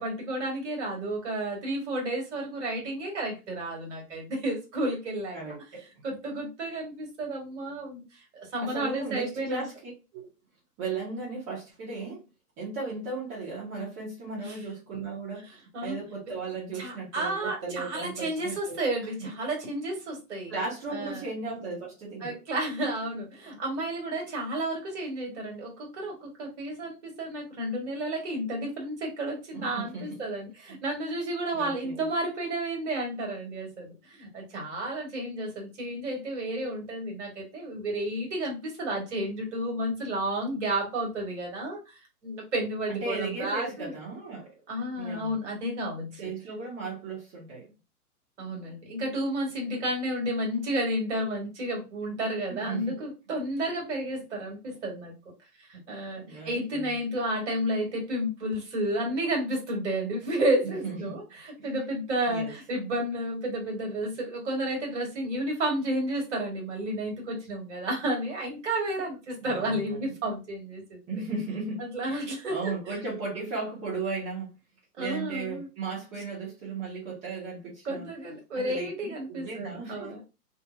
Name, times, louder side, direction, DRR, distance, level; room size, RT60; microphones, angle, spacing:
voice 1, 0.0-5.4 6.0-8.0 8.3-9.7 14.4-14.6 15.7-16.0 16.7-20.5 20.9-21.3 22.2-42.0 42.2-43.9 44.7-46.2 48.4-55.1 55.7-71.0 71.8-72.8 75.0-75.7 77.8-80.2, right 1 dB, 50° right, 1.3 m, -31 dB
voice 2, 5.3-5.9 8.6-10.3 10.8-12.2 12.6-15.6 15.8-18.8 19.2-19.3 20.5-22.4 29.5-30.2 30.7-30.8 31.5-32.1 42.9-44.6 45.0-45.4 46.2-47.7 52.5-53.0 56.1-56.9 60.6-61.1 61.6-61.8 62.3-62.5 69.4-70.1 71.1-72.2 72.5-74.6 75.0-78.1 78.6-80.1, right 3 dB, 15° right, 0.8 m, -36 dB
2.4 x 2.1 x 2.4 m
figure-of-eight pair, 125°, 46 cm